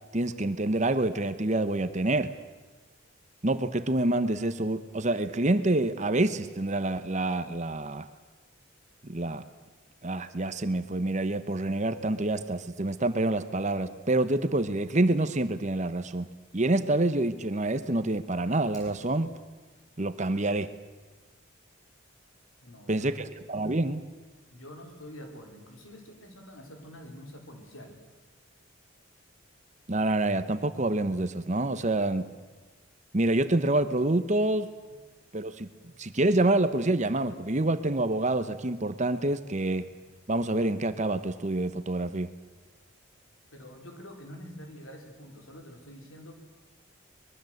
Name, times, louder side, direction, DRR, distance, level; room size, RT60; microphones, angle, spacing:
voice 1, 0.1-2.3 3.4-8.1 9.1-9.4 10.0-16.3 16.5-19.3 20.0-20.7 22.9-24.0 29.9-32.3 33.1-34.7 35.3-35.7 36.0-39.9 40.3-42.3, right 2 dB, 35° right, 11 dB, 1.0 m, -27 dB
Fire, 18.6-19.6, equal, 20° left, 7.2 m, -56 dB
voice 2, 22.6-23.2 24.5-28.0 43.5-46.3, equal, 80° left, 3 dB, 4.6 m, -46 dB
24.5 x 21.5 x 7.9 m, 1.2 s
head